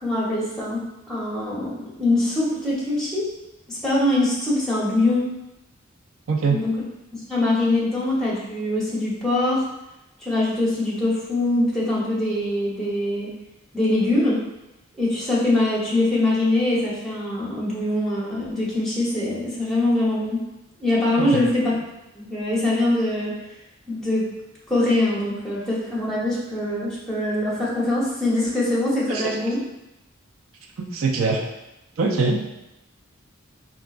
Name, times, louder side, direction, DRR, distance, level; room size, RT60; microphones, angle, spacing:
voice 1, 0.0-3.3 3.7-5.3 6.5-6.7 7.3-9.6 10.2-13.3 13.7-14.4 15.0-20.4 20.8-21.8 22.1-23.3 23.9-24.2 24.7-29.6, left 1 dB, 5° left, -7 dB, 0.9 m, -23 dB
voice 2, 6.3-6.6 21.2-21.4 29.1-29.3 30.8-31.4 32.0-32.5, right 4 dB, 85° right, 1 dB, 0.5 m, -23 dB
4.6 x 2.4 x 2.4 m, 0.93 s
head